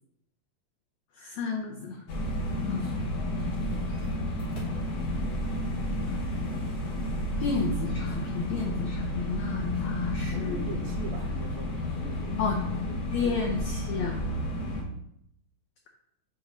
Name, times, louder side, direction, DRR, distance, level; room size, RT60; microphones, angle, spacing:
voice 1, 1.1-2.0 2.6-2.9 6.0-6.2 7.4-10.6 12.4-12.6 13.1-14.2, left 5 dB, 85° left, 0 dB, 1.6 m, -32 dB
sound 1, 2.1-14.8, left 1 dB, 55° left, 2.0 m, -31 dB
voice 2, 10.3-12.5 12.9-13.1 14.7-14.9, right 3 dB, 85° right, 2 dB, 2.8 m, -42 dB
7.6 x 3.1 x 5.0 m, 0.74 s
omnidirectional pair, 4.1 m